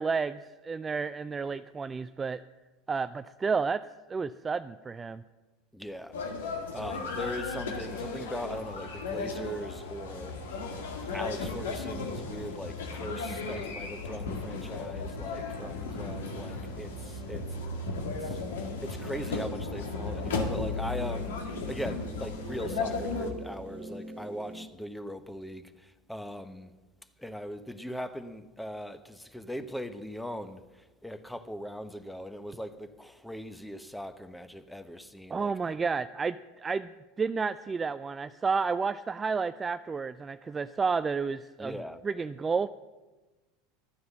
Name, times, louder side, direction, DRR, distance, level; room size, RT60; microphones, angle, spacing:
voice 1, 0.0-2.4 2.9-5.2 35.3-36.9 37.2-42.7, right 5 dB, 20° right, 0.4 m, -31 dB
voice 2, 5.7-6.1 6.7-10.3 11.1-17.4 18.2-18.4 18.8-21.3 21.7-25.7 26.1-26.7 27.2-30.6 31.0-35.5 41.6-42.0, equal, 5° left, 1.1 m, -39 dB
sound 1, 6.1-23.3, left 4 dB, 80° left, 1.9 m, -35 dB
sound 2, 15.9-24.6, right 3 dB, 85° right, 1.6 m, -46 dB
13.0 x 9.5 x 7.3 m
hypercardioid pair, 85°, 0 cm